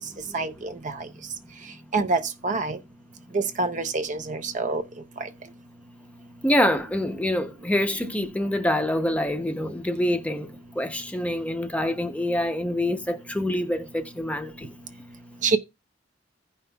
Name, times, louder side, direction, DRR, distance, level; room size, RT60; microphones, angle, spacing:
voice 1, 0.3-0.7 1.9-2.8 3.3-4.8 15.4-15.6, right 3 dB, 45° right, 0.6 m, -26 dB
voice 2, 6.4-14.7, left 1 dB, 5° left, 0.6 m, -26 dB
16.0 x 5.5 x 2.3 m
head